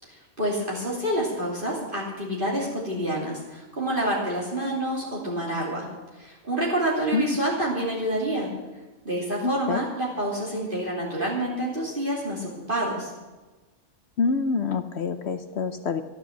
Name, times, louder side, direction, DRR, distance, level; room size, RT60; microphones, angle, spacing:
voice 1, 0.0-5.9 6.1-8.5 9.0-13.1, right 1 dB, 40° right, -5 dB, 3.1 m, -28 dB
voice 2, 9.4-9.8 14.2-16.0, left 4 dB, 60° left, 9 dB, 1.0 m, -26 dB
13.0 x 11.5 x 7.2 m, 1.2 s
omnidirectional pair, 1.4 m